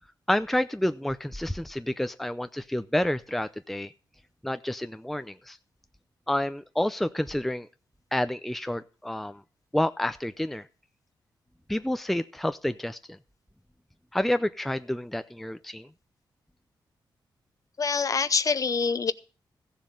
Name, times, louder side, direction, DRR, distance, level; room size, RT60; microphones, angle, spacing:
voice 1, 0.3-3.9 4.4-5.6 6.3-7.7 8.1-9.4 9.7-10.7 11.7-13.2 14.1-15.9, left 1 dB, ahead, 11 dB, 0.5 m, -29 dB
voice 2, 17.8-19.1, left 5 dB, 45° left, 14 dB, 0.7 m, -25 dB
15.5 x 7.4 x 5.4 m, 0.36 s
cardioid pair, 95°, 8 cm